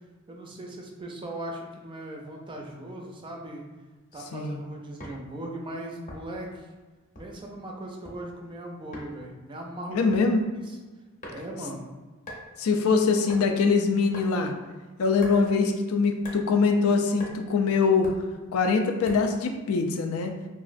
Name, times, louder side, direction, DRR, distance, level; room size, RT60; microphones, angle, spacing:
voice 1, 0.3-3.6 4.1-6.7 7.2-10.1 11.3-11.8, right 1 dB, 25° right, 0 dB, 0.4 m, -38 dB
sound 1, 5.0-5.2 6.1-6.4 7.1-7.5 7.8-8.2 8.9-9.1 10.1-10.3 11.2-11.6 12.3-12.5 13.3-13.5 14.1-14.3 15.2-15.4 16.2-16.4 17.2-17.3 18.0-18.2 19.1-19.3, left 1 dB, 35° left, 0.7 m, -41 dB
voice 2, 9.9-10.4 12.6-14.5 15.0-18.1 18.5-20.3, left 4 dB, 80° left, 4 dB, 0.4 m, -23 dB
3.0 x 2.4 x 2.5 m, 1.3 s
head